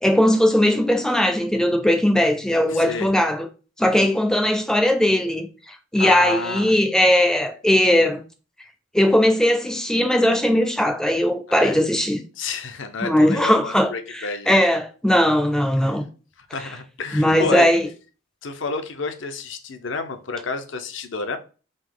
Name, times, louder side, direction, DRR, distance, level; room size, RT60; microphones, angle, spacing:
voice 1, 0.0-3.5 3.8-8.2 8.9-12.2 13.0-16.0 16.6-16.7 17.1-17.9, left 1 dB, 5° left, 0.5 m, -19 dB
voice 2, 2.7-3.1 6.0-6.8 11.5-11.8 12.4-14.6 15.8-16.0 16.5-17.7 18.4-21.4, left 3 dB, 65° left, 0.7 m, -30 dB
3.8 x 2.8 x 3.7 m
head